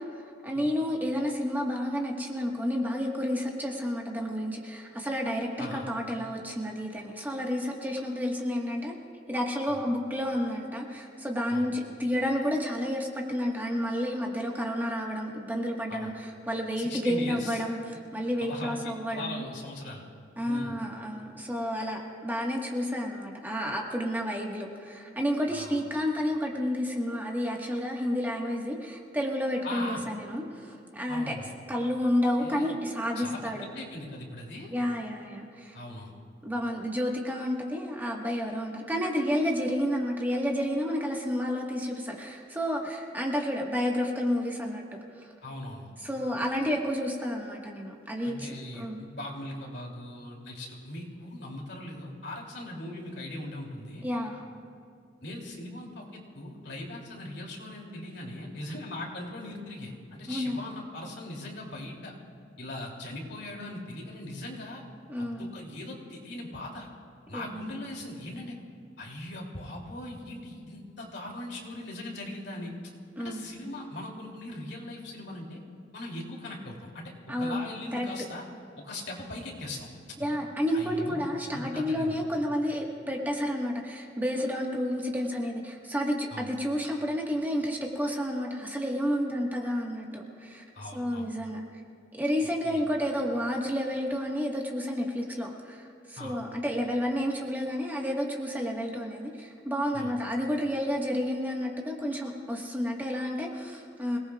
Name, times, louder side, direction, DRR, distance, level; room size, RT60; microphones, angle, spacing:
voice 1, 0.4-8.9 9.3-19.4 20.4-31.4 31.7-33.7 34.7-35.8 36.4-44.8 45.2-45.3 46.0-48.5 48.7-49.0 54.0-54.4 60.3-60.6 65.1-65.5 67.3-67.7 73.2-73.5 77.3-77.6 77.9-78.0 80.2-90.6 90.9-91.6 92.2-104.2, equal, 10° right, -1 dB, 1.4 m, -30 dB
voice 2, 16.8-17.6 18.4-18.8 19.1-20.0 20.4-20.8 25.5-25.8 29.6-30.0 31.1-31.5 32.4-32.7 33.1-34.7 35.7-36.1 45.4-45.9 48.2-54.1 55.2-62.1 62.6-64.8 65.2-66.9 67.3-68.6 69.0-72.7 73.2-75.6 75.9-78.4 78.8-79.9 80.2-80.3 80.7-82.2 86.3-86.5 90.7-91.2 92.6-92.8 96.2-96.4 99.9-100.1, left 1 dB, 65° left, -1 dB, 2.8 m, -40 dB
26.5 x 18.0 x 2.4 m, 2.4 s
head